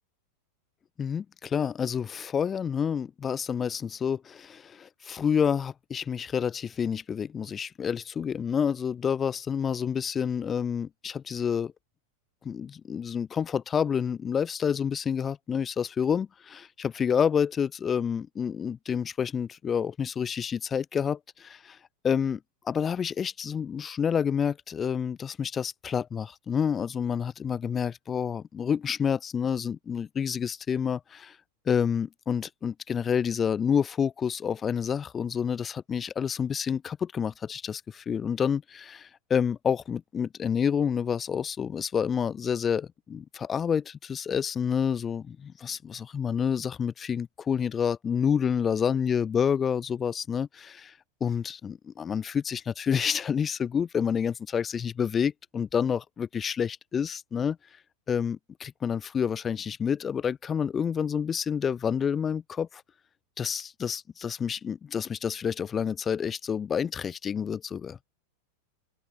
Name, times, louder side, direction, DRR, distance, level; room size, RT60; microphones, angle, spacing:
voice 1, 1.0-11.7 12.4-21.8 22.0-22.4 22.7-31.3 31.7-50.9 51.2-57.6 58.1-62.8 63.4-68.0, left 7 dB, 20° left, 2.3 m, -28 dB
open air
figure-of-eight pair, 90°, 0 cm